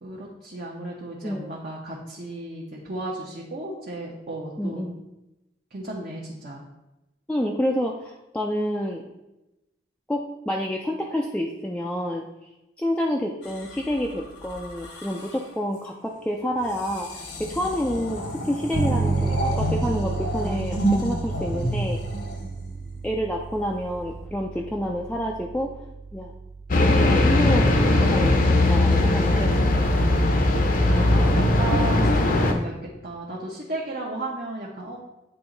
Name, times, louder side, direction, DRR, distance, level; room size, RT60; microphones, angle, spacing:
voice 1, 0.0-4.8 5.7-6.6 30.8-32.7 33.0-35.0, right 2 dB, 55° right, -3 dB, 0.8 m, -34 dB
voice 2, 4.6-5.0 7.3-9.0 10.1-12.3 12.8-22.0 23.0-25.7 26.1-26.3 26.8-28.4 28.7-29.9 32.5-32.7, equal, 5° left, -1 dB, 0.3 m, -28 dB
sound 1, 13.4-15.5 16.6-23.0 23.9-24.2, equal, 80° left, 1.1 m, -31 dB
Bass guitar, 18.7-28.5, right 4 dB, 85° right, 0.5 m, -32 dB
sound 2, 26.7-32.5, left 2 dB, 50° left, 0.6 m, -19 dB
8.7 x 3.0 x 3.8 m, 0.97 s
head